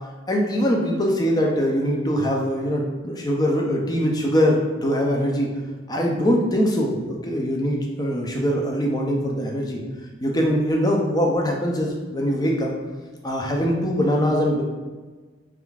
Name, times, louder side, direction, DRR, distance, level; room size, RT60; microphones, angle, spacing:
voice 1, 0.3-5.5 5.9-9.8 10.2-12.8 13.2-14.6, equal, 20° left, 0 dB, 0.5 m, -22 dB
3.6 x 3.4 x 2.3 m, 1.3 s
head